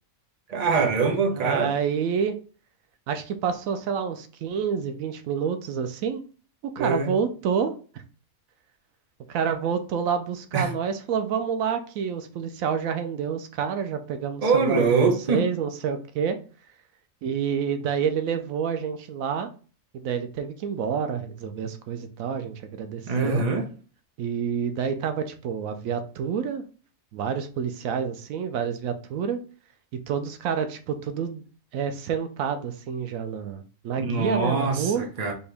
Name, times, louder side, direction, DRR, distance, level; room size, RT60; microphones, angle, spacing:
voice 1, 0.5-1.7 6.8-7.1 10.5-10.7 14.4-15.4 23.1-23.7 34.0-35.3, right 4 dB, 35° right, 0.8 m, -23 dB
voice 2, 1.3-2.4 3.1-6.2 6.6-7.7 9.3-16.4 17.2-19.5 19.9-23.4 24.2-26.6 27.1-29.4 29.9-31.4 31.7-35.1, right 7 dB, 85° right, 1.0 m, -28 dB
4.4 x 2.9 x 3.3 m
omnidirectional pair, 1.4 m